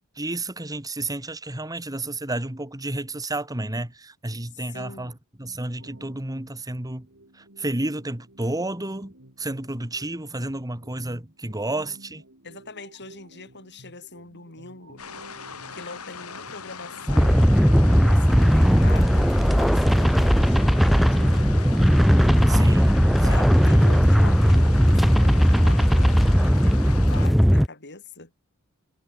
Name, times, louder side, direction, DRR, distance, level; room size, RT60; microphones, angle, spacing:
voice 1, 0.0-5.1 5.4-7.1 7.6-9.1 9.4-12.2 17.8-17.9 22.5-23.0 23.3-23.4, right 2 dB, 15° right, 2.0 m, -31 dB
voice 2, 4.7-5.2 12.4-15.0 15.7-17.5 17.9-22.0 23.2-28.3, left 3 dB, 50° left, 6.8 m, -42 dB
sound 1, 5.8-24.0, right 1 dB, 60° right, 4.3 m, -51 dB
sound 2, 15.0-27.3, left 5 dB, 85° left, 7.2 m, -40 dB
sound 3, 17.1-27.7, equal, ahead, 0.3 m, -17 dB
head